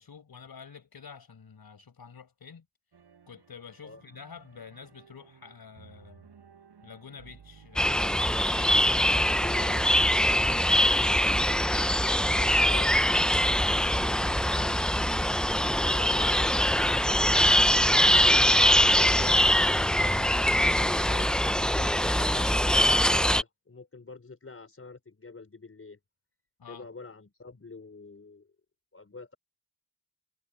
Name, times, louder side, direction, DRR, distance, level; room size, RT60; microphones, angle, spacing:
voice 1, 0.0-2.6 3.3-6.3 6.8-11.5 12.2-12.9 13.2-14.9 26.6-26.9, left 6 dB, 60° left, 4.9 m, -47 dB
sound 1, 2.9-15.7, right 6 dB, 70° right, 7.0 m, -56 dB
sound 2, 7.8-23.4, equal, ahead, 0.4 m, -23 dB
voice 2, 12.5-12.9 15.7-17.8 18.2-26.0 26.7-28.5 28.9-29.4, left 3 dB, 35° left, 5.2 m, -46 dB
wide cardioid pair, 125°, 41 cm